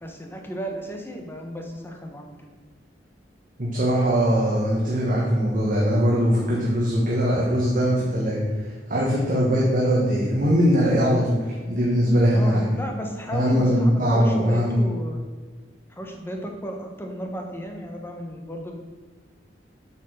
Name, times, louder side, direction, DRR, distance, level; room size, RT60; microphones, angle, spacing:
voice 1, 0.0-2.3 12.3-15.2 15.9-18.7, equal, 15° left, 2 dB, 1.2 m, -34 dB
voice 2, 3.6-12.7 13.3-14.8, equal, 50° right, -4 dB, 1.6 m, -21 dB
8.1 x 5.2 x 6.5 m, 1.4 s
head